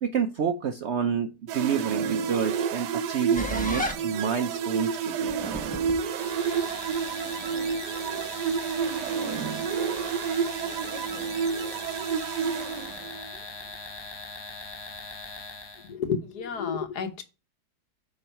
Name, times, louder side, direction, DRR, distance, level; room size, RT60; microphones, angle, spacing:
voice 1, 0.0-5.6, right 7 dB, 65° right, 8 dB, 0.7 m, -29 dB
sound 1, 1.5-13.4, right 6 dB, 90° right, 1.3 m, -29 dB
sound 2, 3.4-11.9, left 1 dB, 5° left, 0.8 m, -40 dB
sound 3, 6.0-15.9, left 3 dB, 40° left, 0.3 m, -41 dB
voice 2, 15.9-17.2, left 6 dB, 75° left, 8 dB, 1.5 m, -30 dB
8.8 x 3.6 x 5.6 m, 0.30 s
omnidirectional pair, 1.8 m